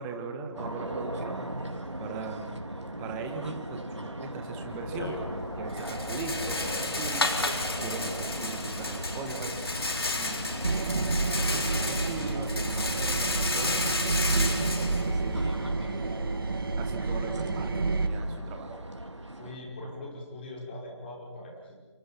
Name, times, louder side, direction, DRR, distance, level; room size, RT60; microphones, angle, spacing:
voice 1, 0.0-1.4 2.0-2.6 3.0-5.2 5.6-7.3 7.8-9.6 10.1-10.5 10.9-13.8 14.3-15.4 15.9-16.3 16.8-18.8, right 4 dB, 10° right, 5 dB, 1.5 m, -40 dB
sound 1, 0.5-19.6, right 1 dB, 85° right, 3.8 m, -38 dB
Rattle, 4.7-15.7, left 2 dB, 55° left, 4.3 m, -32 dB
sound 2, 10.6-18.1, right 3 dB, 50° right, 2.2 m, -29 dB
voice 2, 19.4-21.7, left 2 dB, 20° left, -1 dB, 5.5 m, -41 dB
30.0 x 28.0 x 6.0 m, 1.3 s
figure-of-eight pair, 160°, 15 cm